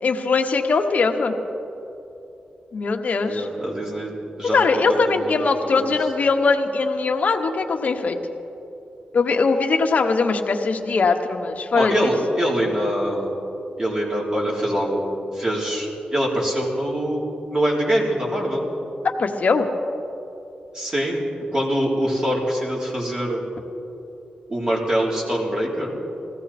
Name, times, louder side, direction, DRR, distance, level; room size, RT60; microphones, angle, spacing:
voice 1, 0.0-1.3 2.7-3.5 4.5-8.2 9.1-12.1 19.2-19.7, left 4 dB, 60° left, 4 dB, 1.2 m, -21 dB
voice 2, 3.3-5.9 11.8-13.3 13.8-18.7 20.7-21.2 21.5-23.4 24.5-25.9, equal, 25° right, -3 dB, 3.5 m, -24 dB
20.5 x 15.5 x 4.3 m, 2.9 s
cardioid pair, 90°, 3 cm